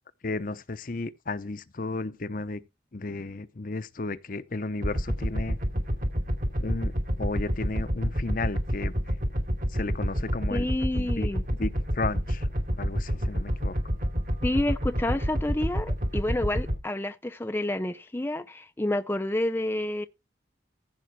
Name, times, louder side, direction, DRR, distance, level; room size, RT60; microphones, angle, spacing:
voice 1, 0.2-2.6 2.9-5.6 6.6-8.9 9.7-10.7 11.0-11.3 11.6-12.5 12.8-13.7, left 3 dB, 50° left, 0.8 m, -33 dB
sound 1, 4.8-16.8, equal, 45° right, 2.7 m, -28 dB
voice 2, 10.5-11.4 14.4-20.1, left 1 dB, 10° left, 0.5 m, -29 dB
15.5 x 5.3 x 4.6 m
head